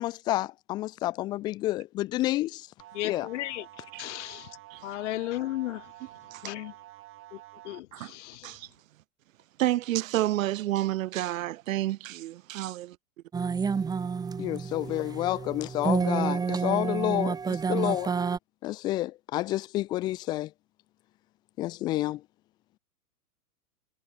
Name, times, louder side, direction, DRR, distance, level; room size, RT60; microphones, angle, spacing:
voice 1, 0.0-2.6 3.0-3.3 14.4-18.1 18.6-20.5 21.6-22.2, left 16 dB, 10° left, 0.5 m, -29 dB
sound 1, 2.8-7.8, right 18 dB, 25° right, 5.8 m, -49 dB
voice 2, 2.9-3.6 4.0-4.5 4.8-5.8 6.4-6.7 7.6-7.9 8.1-8.3, left 17 dB, 50° left, 1.2 m, -34 dB
voice 3, 9.6-13.0, right 15 dB, 60° right, 2.1 m, -30 dB
sound 2, 13.3-18.4, right 5 dB, 10° right, 1.6 m, -29 dB
supercardioid pair, 160°, 46 cm